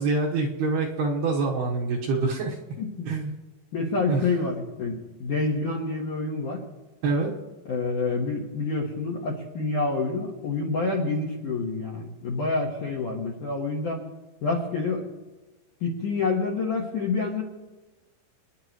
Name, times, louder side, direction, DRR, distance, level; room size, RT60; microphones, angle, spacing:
voice 1, 0.0-2.6 3.1-3.3 4.1-4.2 7.0-7.3, right 3 dB, 70° right, -1 dB, 2.7 m, -25 dB
voice 2, 2.8-3.1 3.7-6.6 7.7-14.0 14.4-15.0 15.8-17.4, left 3 dB, 65° left, 0 dB, 2.0 m, -28 dB
28.0 x 10.5 x 3.1 m, 1.2 s
omnidirectional pair, 5.5 m